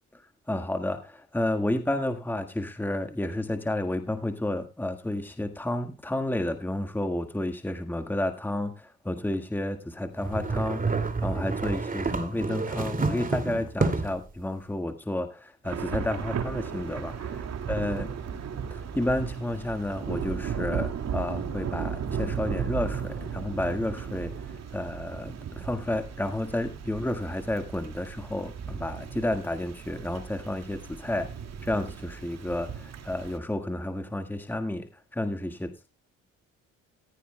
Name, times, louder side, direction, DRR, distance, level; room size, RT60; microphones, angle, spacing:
voice 1, 0.1-17.3 17.7-18.1 18.7-31.3 31.6-35.9, left 1 dB, 5° left, 6 dB, 1.6 m, -31 dB
sound 1, 10.2-14.3, right 3 dB, 30° right, 2.4 m, -29 dB
Thunder / Rain, 15.6-33.4, right 7 dB, 60° right, 2.2 m, -35 dB
15.0 x 14.5 x 2.2 m, 0.27 s
cardioid pair, 90°, 30 cm